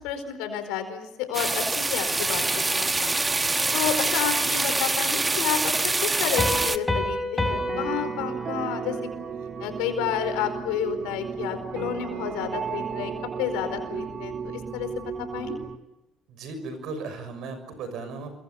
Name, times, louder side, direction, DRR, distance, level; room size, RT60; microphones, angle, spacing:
voice 1, 0.0-3.1 3.7-9.0 9.6-13.1 13.4-15.0 15.3-15.6, left 9 dB, 80° left, 8 dB, 4.6 m, -30 dB
sound 1, 1.3-6.8, right 3 dB, 20° right, 1.2 m, -25 dB
Piano, 6.4-9.8, left 1 dB, 15° left, 4.0 m, -30 dB
sound 2, 7.5-15.8, right 7 dB, 45° right, 1.7 m, -34 dB
voice 2, 16.3-18.3, right 3 dB, 65° right, 9 dB, 6.3 m, -36 dB
28.0 x 23.5 x 7.3 m, 0.96 s
hypercardioid pair, 70°, 0 cm